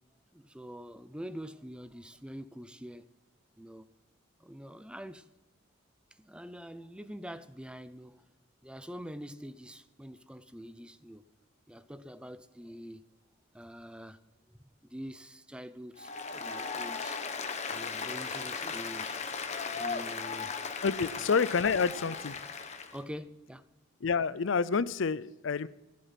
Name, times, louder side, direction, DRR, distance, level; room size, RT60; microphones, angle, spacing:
voice 1, 0.3-3.1 3.6-3.9 4.4-5.3 6.2-8.2 8.6-11.2 11.7-13.1 13.5-14.2 14.5-17.2 17.7-19.2 19.5-20.5 21.1-21.3 22.9-23.7, equal, 5° right, 0.6 m, -45 dB
Applause, 16.0-23.0, left 5 dB, 35° left, 1.2 m, -37 dB
voice 2, 20.8-22.4 24.0-25.7, left 5 dB, 70° left, 0.5 m, -28 dB
15.5 x 11.5 x 5.8 m
head